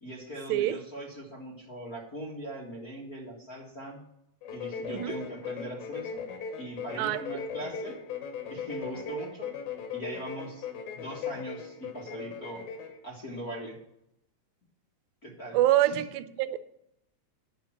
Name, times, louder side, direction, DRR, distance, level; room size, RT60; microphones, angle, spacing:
voice 1, 0.0-4.0 4.5-6.3 6.6-8.0 8.5-9.5 9.9-10.7 10.9-12.7 13.0-13.8 15.2-16.0, right 1 dB, 35° left, -3 dB, 1.6 m, -40 dB
sound 1, 4.4-13.0, left 6 dB, 85° left, 3.1 m, -38 dB
voice 2, 15.5-16.6, right 13 dB, 90° right, 11 dB, 2.4 m, -25 dB
10.5 x 5.8 x 7.3 m, 0.80 s
omnidirectional pair, 4.0 m